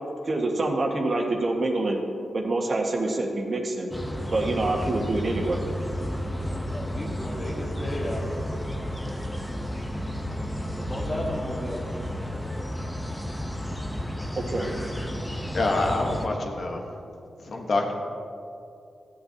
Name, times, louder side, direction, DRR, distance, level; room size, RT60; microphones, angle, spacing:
voice 1, 0.2-2.0 2.3-3.9 4.3-5.6 14.3-14.6, right 2 dB, 50° right, 0 dB, 1.6 m, -26 dB
sound 1, 3.9-16.3, equal, 10° left, 0.9 m, -32 dB
voice 2, 6.5-8.5 10.7-12.0, equal, 30° left, -7 dB, 1.8 m, -34 dB
voice 3, 15.5-16.8 17.4-17.9, left 2 dB, 55° left, 1 dB, 1.3 m, -26 dB
15.0 x 8.2 x 2.9 m, 2.6 s
cardioid pair, 60°, 0 cm